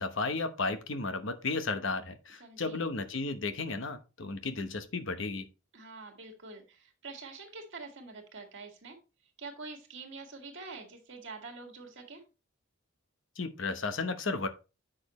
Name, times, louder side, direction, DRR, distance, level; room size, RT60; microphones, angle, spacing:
voice 1, 0.0-5.5 13.4-14.5, left 3 dB, 60° left, 0.9 m, -34 dB
voice 2, 2.4-2.8 5.7-9.0 9.4-12.2, right 3 dB, 55° right, 1.9 m, -46 dB
7.6 x 6.3 x 3.1 m
head